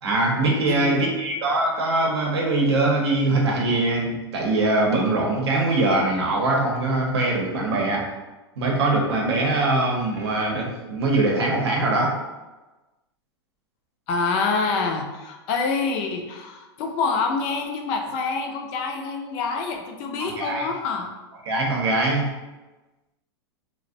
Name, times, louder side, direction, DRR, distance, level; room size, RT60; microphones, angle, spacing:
voice 1, 0.0-8.0 8.6-12.1 20.2-20.7 21.5-22.3, right 2 dB, 75° right, -1 dB, 0.7 m, -22 dB
voice 2, 0.7-1.1 14.1-21.1, left 4 dB, 40° left, 3 dB, 0.4 m, -26 dB
2.5 x 2.0 x 2.6 m, 1.1 s
hypercardioid pair, 120°, 14 cm